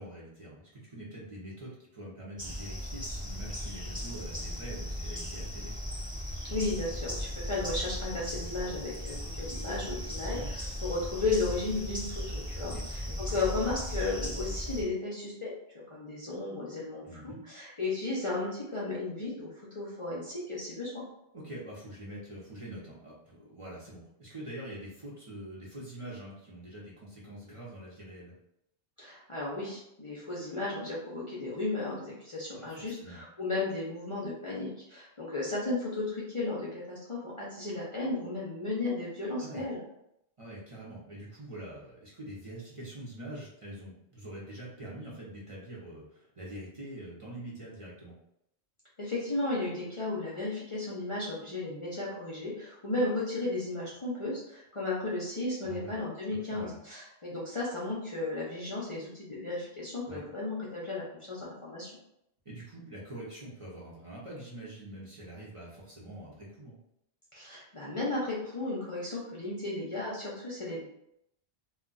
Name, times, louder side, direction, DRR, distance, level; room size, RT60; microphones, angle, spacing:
voice 1, 0.0-5.7 10.3-10.5 12.6-13.2 17.0-17.4 21.3-28.3 32.5-33.2 39.4-39.7 40.4-48.1 55.6-56.0 56.3-56.8 60.1-60.2 62.4-66.8, right 1 dB, 35° right, -6 dB, 0.7 m, -45 dB
sound 1, 2.4-14.8, equal, 10° right, 1.0 m, -37 dB
voice 2, 6.5-21.0 29.0-39.8 49.0-61.9 67.3-70.9, left 2 dB, 35° left, -6 dB, 0.6 m, -34 dB
2.3 x 2.3 x 3.8 m, 0.78 s
omnidirectional pair, 1.1 m